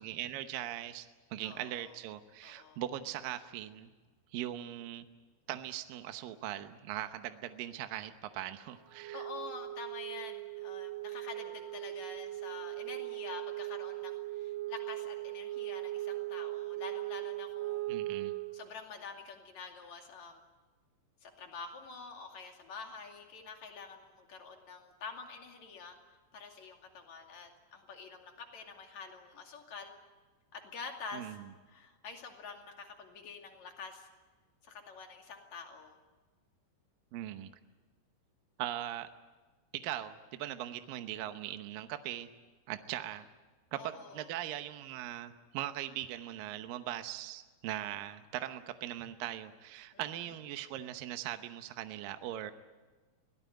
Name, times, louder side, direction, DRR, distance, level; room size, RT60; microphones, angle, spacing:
voice 1, 0.0-3.9 4.3-5.1 5.5-9.3 17.9-18.3 31.1-31.5 37.1-37.5 38.6-39.1 39.7-42.3 42.7-43.3 43.7-52.5, right 12 dB, 75° right, 8 dB, 2.1 m, -40 dB
voice 2, 1.4-1.9 2.4-2.8 9.1-17.9 18.5-20.4 21.2-26.0 26.3-29.9 30.5-31.4 31.7-34.1 34.6-36.0 43.8-44.3 49.9-50.0, left 5 dB, 45° left, 3 dB, 3.3 m, -47 dB
Wind instrument woodwind instrument, 8.9-18.6, right 17 dB, 60° right, 2.5 m, -39 dB
24.0 x 18.0 x 9.2 m, 1.3 s
omnidirectional pair, 5.3 m